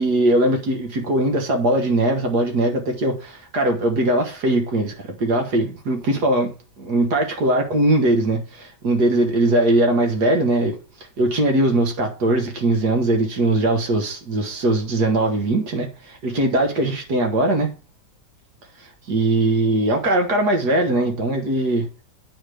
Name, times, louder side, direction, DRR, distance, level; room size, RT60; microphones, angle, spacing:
voice 1, 0.0-6.5 6.8-10.8 11.2-17.7 19.1-21.9, right 2 dB, 60° right, 1.8 m, -20 dB
9.2 x 4.4 x 4.9 m
omnidirectional pair, 2.1 m